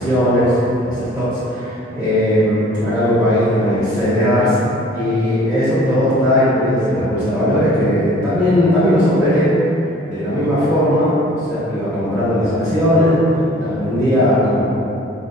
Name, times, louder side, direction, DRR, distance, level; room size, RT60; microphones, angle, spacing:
voice 1, 0.0-4.6 4.9-9.5 10.0-13.2 13.6-14.6, equal, 5° right, -15 dB, 0.9 m, -17 dB
4.9 x 2.6 x 2.3 m, 2.9 s
head